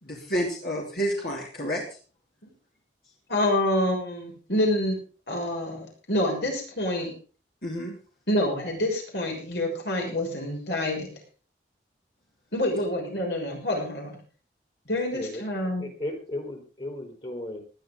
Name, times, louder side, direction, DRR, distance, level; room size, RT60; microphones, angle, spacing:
voice 1, 0.0-1.8 7.6-7.9, equal, 50° left, -2 dB, 3.0 m, -29 dB
voice 2, 3.3-5.0 5.3-7.1 8.3-11.2 12.5-14.2 14.9-15.8, left 1 dB, 70° left, 0 dB, 6.4 m, -27 dB
voice 3, 15.1-15.4 15.8-17.6, left 1 dB, 30° left, 4 dB, 3.7 m, -35 dB
19.0 x 11.0 x 3.9 m, 0.38 s
head